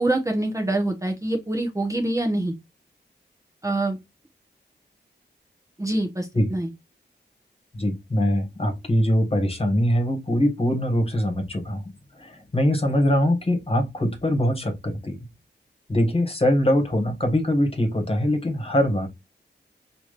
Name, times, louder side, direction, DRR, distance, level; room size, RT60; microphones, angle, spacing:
voice 1, 0.0-2.5 3.6-4.0 5.8-6.7, right 2 dB, 15° right, 1.0 m, -25 dB
voice 2, 7.7-11.8 12.2-15.2 15.9-19.1, equal, 30° left, 1.5 m, -22 dB
4.9 x 3.0 x 2.4 m
wide cardioid pair, 75°, 18 cm